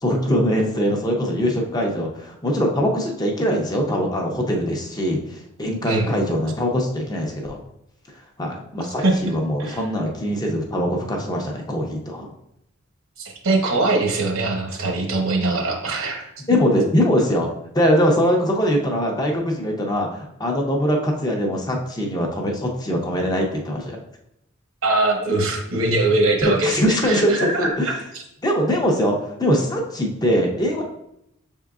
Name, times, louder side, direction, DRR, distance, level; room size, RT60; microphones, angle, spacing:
voice 1, 0.0-7.6 8.4-12.3 16.5-17.5 17.7-24.0 26.4-27.9 28.4-30.8, equal, 20° left, 1 dB, 0.6 m, -22 dB
voice 2, 13.2-16.2 24.8-26.8 27.0-28.2, right 2 dB, 70° right, 2 dB, 1.0 m, -22 dB
6.1 x 3.6 x 2.4 m, 0.80 s
head